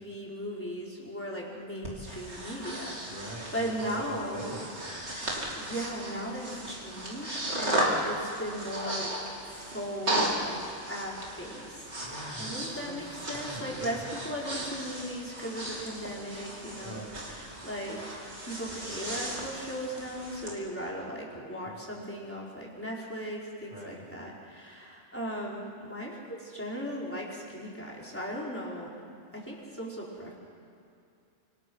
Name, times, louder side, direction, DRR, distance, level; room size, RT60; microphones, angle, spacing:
voice 1, 0.0-4.6 5.1-12.0 12.4-29.0 29.3-30.3, equal, 10° left, -4 dB, 4.7 m, -38 dB
Breathing, 1.8-20.5, right 1 dB, 75° right, 3.9 m, -35 dB
voice 2, 3.1-5.1 12.0-13.0 13.3-14.1 16.8-17.2 21.6-21.8 23.7-24.0, right 1 dB, 50° right, -2 dB, 4.0 m, -43 dB
27.5 x 24.5 x 6.4 m, 2.6 s
omnidirectional pair, 1.2 m